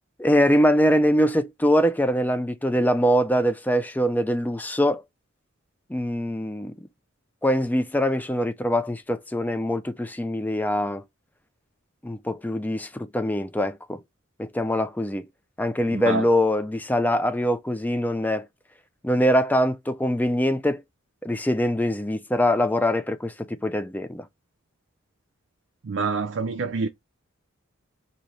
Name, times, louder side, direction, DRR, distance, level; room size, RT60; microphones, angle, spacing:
voice 1, 0.2-5.0 5.9-6.7 7.4-11.0 12.0-14.0 14.4-15.2 15.6-18.5 19.0-20.8 21.2-24.3, equal, 10° left, 0.3 m, -23 dB
voice 2, 15.9-16.2 25.8-26.9, right 4 dB, 60° right, 0.4 m, -27 dB
3.1 x 2.7 x 4.0 m
head